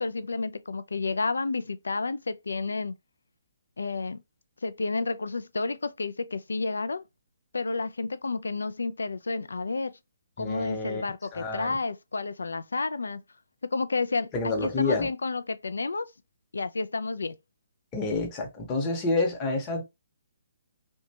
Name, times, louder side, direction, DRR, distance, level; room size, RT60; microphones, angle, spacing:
voice 1, 0.0-2.9 3.8-4.2 4.6-7.0 7.5-9.9 10.4-13.2 13.7-16.1 16.5-17.4, left 3 dB, 70° left, 0.3 m, -30 dB
voice 2, 10.4-11.0 11.3-11.8 14.3-15.1 17.9-19.8, left 3 dB, 20° left, 0.8 m, -28 dB
2.9 x 2.2 x 2.7 m
figure-of-eight pair, 135°, 0 cm